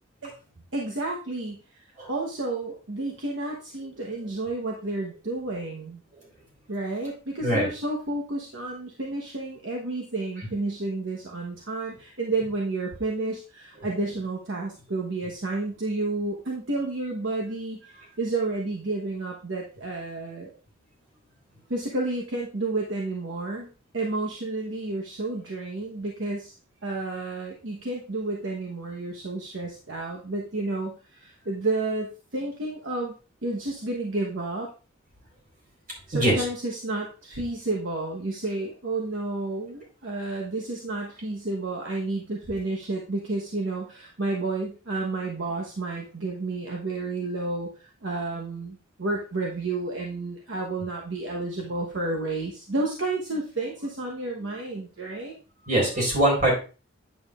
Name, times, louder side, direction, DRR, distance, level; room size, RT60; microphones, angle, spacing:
voice 1, 0.7-1.8 2.1-6.0 6.7-20.5 21.7-23.7 23.9-26.5 26.8-33.1 33.4-34.7 36.1-55.3, right 2 dB, 65° right, -1 dB, 1.1 m, -31 dB
voice 2, 36.1-36.4 55.7-56.5, right 1 dB, 40° right, -2 dB, 4.0 m, -22 dB
8.7 x 7.2 x 2.4 m, 0.35 s
head